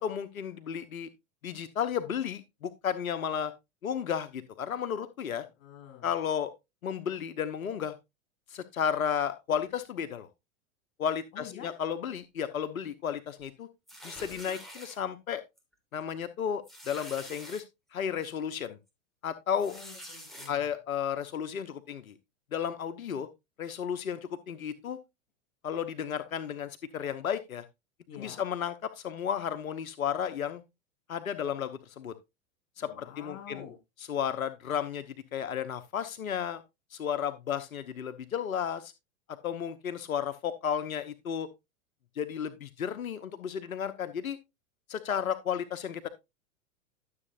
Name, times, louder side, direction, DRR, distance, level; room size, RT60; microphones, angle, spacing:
voice 1, 0.0-1.1 1.4-3.5 3.8-5.4 6.0-6.5 6.8-7.9 8.5-10.3 11.0-13.7 14.0-15.4 15.9-17.6 17.9-18.8 19.2-19.8 20.5-22.1 22.5-23.3 23.6-24.2 24.5-25.0 25.6-27.6 28.2-30.6 31.1-32.1 32.8-33.6 34.1-35.0 35.3-36.6 36.9-38.9 39.4-41.5 42.2-44.4 44.9-46.1, left 8 dB, 85° left, 11 dB, 1.0 m, -33 dB
voice 2, 5.6-6.1 11.3-11.8 19.7-20.7 28.1-28.4 32.8-33.8, left 8 dB, 65° left, 2 dB, 3.3 m, -47 dB
sound 1, 13.9-15.0 15.6-15.7 16.0-16.1 16.6-17.6 18.2-18.3 19.6-20.5, equal, ahead, 3.6 m, -46 dB
12.5 x 7.5 x 2.6 m, 0.23 s
hypercardioid pair, 105°, 41 cm